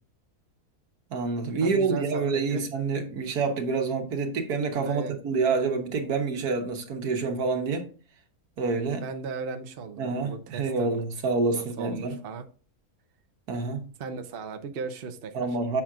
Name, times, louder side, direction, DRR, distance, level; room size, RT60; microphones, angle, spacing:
voice 1, 1.1-7.9 8.6-9.0 10.0-12.2 13.5-13.9 15.3-15.8, right 4 dB, 90° right, 1.7 m, -27 dB
voice 2, 1.6-2.6 3.2-3.3 4.8-5.2 9.0-11.0 11.5-12.4 14.0-15.5, right 5 dB, 50° right, 0.8 m, -37 dB
7.1 x 5.9 x 2.4 m
omnidirectional pair, 1.6 m